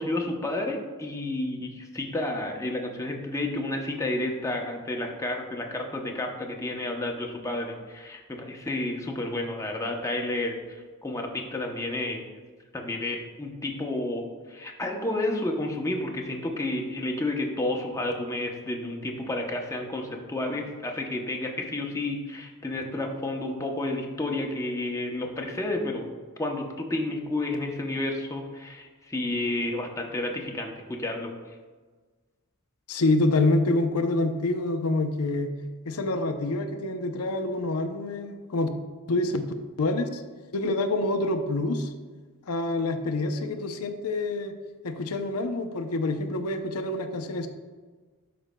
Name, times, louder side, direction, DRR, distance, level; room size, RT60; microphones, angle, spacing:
voice 1, 0.0-12.2 12.7-26.1 26.4-31.3, left 2 dB, 15° left, 1 dB, 0.7 m, -31 dB
voice 2, 32.9-35.5 35.9-38.7 39.1-39.5 39.8-40.2 40.5-41.9 42.5-44.5 44.8-47.5, left 2 dB, 90° left, 6 dB, 0.6 m, -26 dB
12.0 x 5.1 x 2.2 m, 1.4 s
head